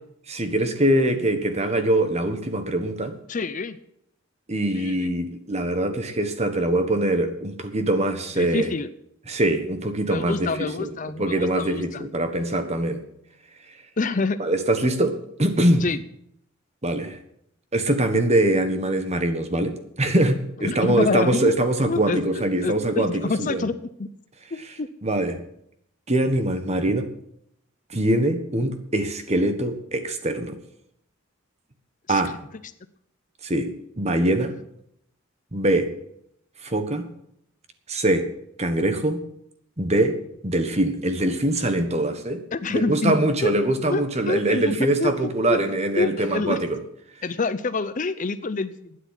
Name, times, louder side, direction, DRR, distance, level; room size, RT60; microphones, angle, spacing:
voice 1, 0.3-3.2 4.5-8.7 9.3-10.9 11.2-13.0 14.4-15.8 16.8-17.2 17.7-23.2 23.5-23.7 25.0-25.4 26.1-27.1 27.9-30.6 32.1-32.3 33.4-33.7 34.0-34.5 35.5-35.9 36.6-37.1 37.9-38.2 38.6-39.2 39.8-40.2 40.4-42.4 42.7-46.8, right 1 dB, 30° right, 8 dB, 1.4 m, -23 dB
voice 2, 3.3-3.8 4.7-5.1 8.4-8.9 10.1-12.1 14.0-14.4 15.8-16.0 20.6-21.5 21.9-24.1 24.5-24.9 32.1-32.2 42.5-43.2 43.4-43.5 43.9-45.1 45.5-46.6 47.2-49.0, left 3 dB, 40° left, 12 dB, 0.6 m, -27 dB
12.0 x 9.4 x 8.2 m, 0.74 s
head